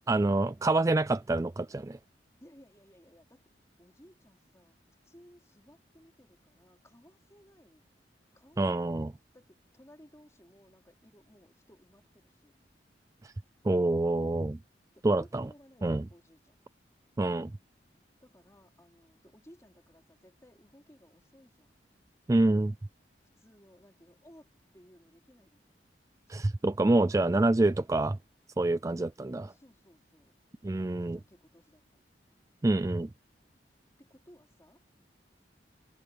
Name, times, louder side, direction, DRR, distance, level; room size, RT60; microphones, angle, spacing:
voice 1, 0.1-2.0 8.6-9.1 13.2-13.3 13.6-14.6 15.0-15.5 15.8-16.0 17.2-17.5 22.3-22.7 26.3-28.2 28.6-29.5 30.6-31.2 32.6-33.1, right 2 dB, 20° right, 0.3 m, -26 dB
voice 2, 2.4-3.4 3.8-4.8 5.1-7.8 8.3-9.0 9.3-12.5 14.9-16.6 18.2-21.8 23.4-25.8 26.5-26.6 29.5-30.4 30.9-32.0 34.0-34.8, equal, 15° left, 4.0 m, -59 dB
head